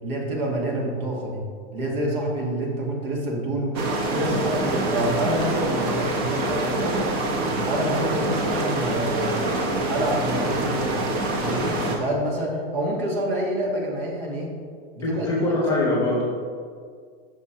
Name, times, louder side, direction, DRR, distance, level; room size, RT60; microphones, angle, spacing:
voice 1, 0.0-1.4 1.7-3.8 4.1-7.1 7.7-9.4 9.9-11.0 11.4-14.5 14.9-15.9, right 1 dB, 65° right, -1 dB, 1.6 m, -27 dB
sound 1, 3.7-12.0, right 2 dB, 30° right, 0.7 m, -25 dB
voice 2, 15.0-16.2, left 2 dB, 15° left, -4 dB, 1.0 m, -23 dB
5.9 x 4.2 x 4.4 m, 2.1 s
supercardioid pair, 160°, 31 cm